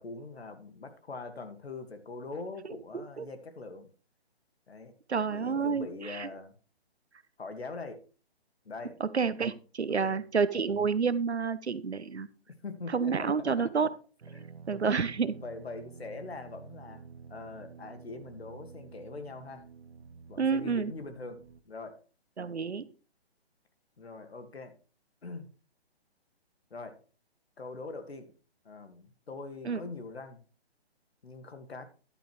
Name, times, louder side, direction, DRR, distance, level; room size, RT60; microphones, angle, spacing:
voice 1, 0.0-3.9 4.7-4.9 5.3-6.5 7.4-8.0 8.7-9.0 9.9-10.2 12.6-13.7 14.3-15.0 15.4-17.0 17.3-19.7 20.3-21.4 21.6-22.0 24.0-24.7 25.2-25.5 26.7-27.0 27.6-28.3 28.6-30.4 31.2-31.8, left 3 dB, 70° left, 8 dB, 2.0 m, -43 dB
voice 2, 2.9-3.3 5.1-6.3 9.0-12.3 12.9-14.0 14.7-15.3 20.4-20.9 22.4-22.9 29.6-29.8, right 5 dB, 85° right, 16 dB, 0.9 m, -29 dB
sound 1, 14.2-21.6, right 5 dB, 70° right, 1.1 m, -50 dB
11.0 x 8.7 x 3.2 m, 0.37 s
figure-of-eight pair, 140°, 32 cm